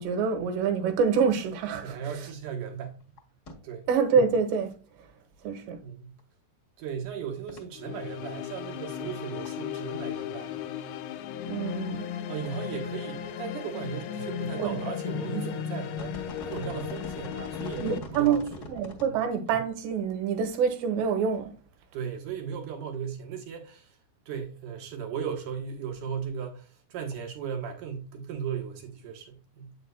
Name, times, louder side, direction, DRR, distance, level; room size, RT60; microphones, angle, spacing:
voice 1, 0.0-2.0 3.9-4.7 5.4-5.8 11.5-12.1 14.6-14.9 15.4-15.5 17.8-21.6, right 6 dB, 90° right, 3.3 m, -26 dB
voice 2, 1.8-3.0 3.6-3.9 5.8-6.2 6.8-10.6 12.3-18.7 21.9-24.0 24.3-29.8, right 7 dB, 65° right, 2.2 m, -37 dB
sound 1, 2.7-2.8 3.0-3.2 3.5-3.6 3.8-3.9 6.2-6.3 7.5-7.6 9.2-9.6 9.8-10.6 11.0-11.1 11.9-12.0 12.4-12.5 12.8-12.9 13.2-13.6 14.6-14.8 15.3-15.5 15.8-19.1 19.5-19.6, left 1 dB, 40° left, 1.5 m, -43 dB
sound 2, 7.7-18.0, left 9 dB, 80° left, 2.2 m, -36 dB
8.6 x 6.7 x 2.3 m
omnidirectional pair, 4.9 m